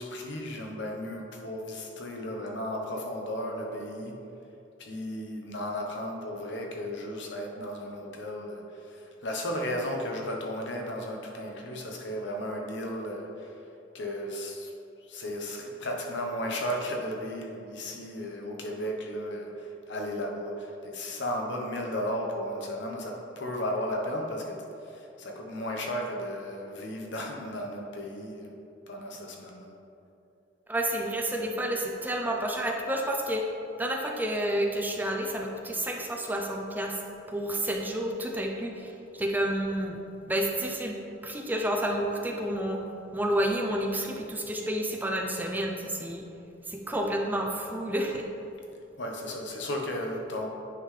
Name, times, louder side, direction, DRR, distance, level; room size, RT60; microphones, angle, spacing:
voice 1, 0.0-4.2 4.8-13.6 13.9-14.7 15.0-28.5 28.9-29.7 49.0-50.5, equal, 65° left, 1 dB, 1.0 m, -34 dB
voice 2, 30.7-33.4 33.8-37.0 37.3-40.0 40.3-41.0 41.2-42.8 43.1-46.2 46.7-48.3, right 1 dB, 10° right, 1 dB, 0.5 m, -30 dB
9.4 x 5.6 x 3.3 m, 2.8 s
head